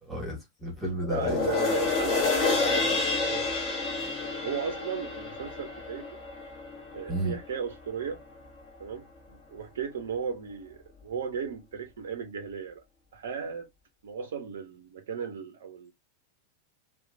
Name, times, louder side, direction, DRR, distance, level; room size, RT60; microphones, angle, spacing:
voice 1, 0.0-1.5 7.1-7.4, right 1 dB, 5° right, 1.3 m, -33 dB
sound 1, 1.0-7.6 8.0-8.1, left 4 dB, 30° left, 1.1 m, -29 dB
voice 2, 1.1-3.8 4.4-6.0 6.9-8.2 8.8-12.8 13.1-13.7 14.0-15.9, right 6 dB, 60° right, 0.4 m, -36 dB
2.8 x 2.1 x 2.5 m
figure-of-eight pair, 90°, 0 cm